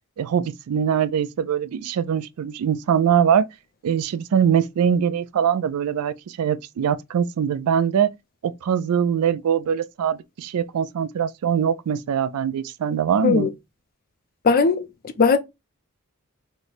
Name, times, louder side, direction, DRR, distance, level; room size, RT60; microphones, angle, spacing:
voice 1, 0.2-3.5 3.8-8.1 8.4-13.5, right 8 dB, 85° right, 0.3 m, -22 dB
voice 2, 14.4-14.8 15.2-15.4, left 4 dB, 40° left, 0.4 m, -17 dB
3.1 x 2.1 x 3.9 m
head